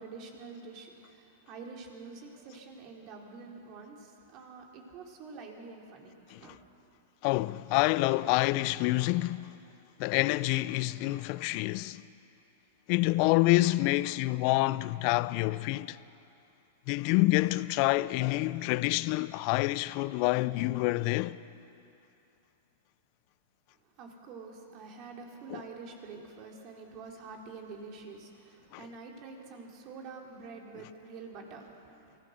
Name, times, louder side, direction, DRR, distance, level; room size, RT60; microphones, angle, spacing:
voice 1, 0.0-6.6 24.0-32.2, right 4 dB, 45° right, 3.5 m, -47 dB
voice 2, 7.2-9.5 10.0-12.0 12.9-16.0 16.9-21.4 25.5-25.6, left 19 dB, 50° left, 0.5 m, -27 dB
24.5 x 16.5 x 6.6 m
hypercardioid pair, 105°, 0 cm